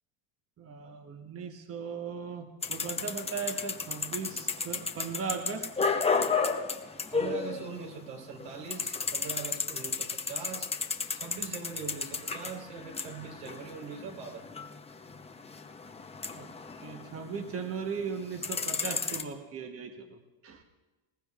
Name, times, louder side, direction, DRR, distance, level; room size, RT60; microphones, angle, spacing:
voice 1, 0.6-5.7 16.3-16.5 16.8-20.6, right 5 dB, 30° right, 4 dB, 1.2 m, -38 dB
sound 1, 2.6-8.1 8.3-17.7 18.1-19.2, left 4 dB, 15° left, 0.8 m, -33 dB
voice 2, 7.1-10.7 11.1-14.5, right 5 dB, 80° right, 1 dB, 4.2 m, -41 dB
20.5 x 18.5 x 2.5 m, 1.1 s
supercardioid pair, 120°, 49 cm